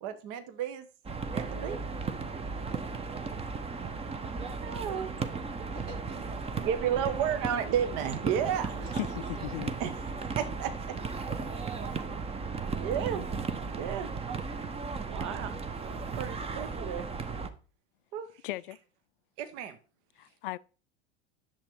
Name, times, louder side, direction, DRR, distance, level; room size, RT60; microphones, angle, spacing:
voice 1, 0.0-0.9 1.3-1.8 4.2-5.1 6.5-8.9 9.8-9.9 10.3-10.9 12.7-13.2 13.6-14.1 15.1-17.1 18.1-18.3 19.4-19.8, right 9 dB, 45° right, 1.2 m, -33 dB
sound 1, 1.0-17.5, right 4 dB, 20° right, 1.1 m, -35 dB
voice 2, 5.7-6.7 8.6-9.7 11.1-12.6, right 2 dB, 65° right, 2.7 m, -52 dB
voice 3, 8.9-9.7 11.9-12.1 18.4-18.8 20.2-20.6, left 17 dB, 55° left, 0.5 m, -37 dB
10.5 x 7.3 x 4.7 m
figure-of-eight pair, 80°, 33 cm